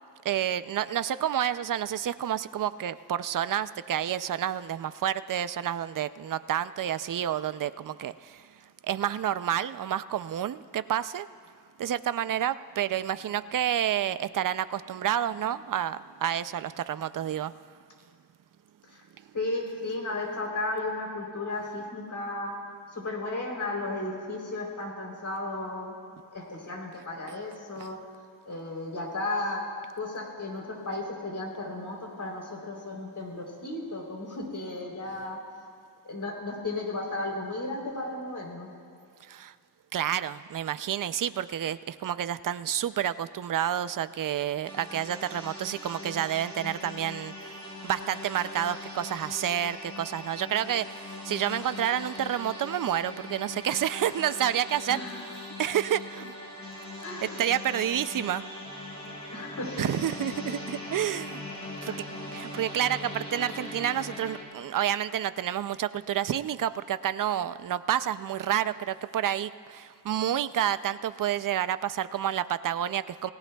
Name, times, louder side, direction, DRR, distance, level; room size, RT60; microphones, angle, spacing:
voice 1, 0.2-8.5 8.8-11.3 11.8-17.5 27.8-27.9 39.3-39.5 39.9-47.6 47.8-55.3 55.6-56.4 57.2-58.4 59.8-61.4 61.8-61.9 62.3-73.3, right 10 dB, 55° right, 14 dB, 0.5 m, -29 dB
voice 2, 19.3-22.5 22.9-25.9 26.3-28.0 28.5-29.6 29.9-35.4 36.0-38.7 54.9-55.2 57.0-57.4 59.3-59.9 61.8-61.9, left 2 dB, 50° left, 0 dB, 3.5 m, -34 dB
sound 1, 44.6-64.4, left 1 dB, 15° left, 3.7 m, -40 dB
28.5 x 18.0 x 2.3 m, 2.2 s
wide cardioid pair, 135°, 39 cm